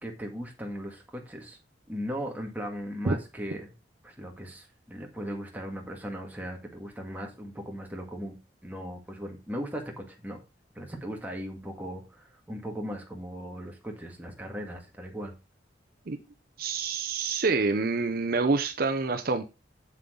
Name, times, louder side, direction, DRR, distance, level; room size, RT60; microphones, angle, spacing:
voice 1, 0.0-1.6 1.9-3.7 4.0-8.4 8.6-10.4 10.8-15.3, equal, 10° right, 1.8 m, -38 dB
voice 2, 16.6-19.4, right 3 dB, 50° right, 0.6 m, -27 dB
7.3 x 7.1 x 3.8 m
head